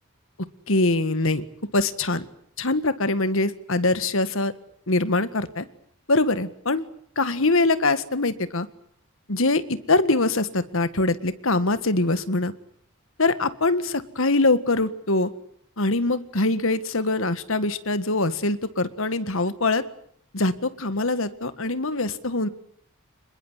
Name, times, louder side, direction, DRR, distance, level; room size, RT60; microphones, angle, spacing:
voice 1, 0.7-1.4 1.7-2.3 2.6-4.5 4.9-5.7 6.1-6.9 7.2-8.7 9.3-12.5 13.2-15.3 15.8-19.8 20.3-22.5, left 2 dB, 65° left, 13 dB, 1.8 m, -23 dB
26.5 x 22.0 x 8.2 m, 0.66 s
head